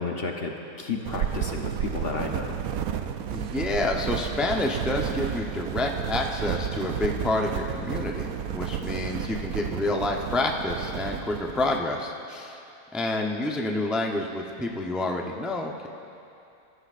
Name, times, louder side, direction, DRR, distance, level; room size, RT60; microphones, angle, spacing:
voice 1, 0.0-2.6, left 4 dB, 45° left, 1 dB, 0.9 m, -32 dB
sound 1, 1.0-11.8, right 9 dB, 70° right, 1.0 m, -32 dB
voice 2, 3.3-12.6 12.9-15.9, left 2 dB, ahead, 1 dB, 0.4 m, -28 dB
21.5 x 13.5 x 2.5 m, 2.7 s
omnidirectional pair, 1.7 m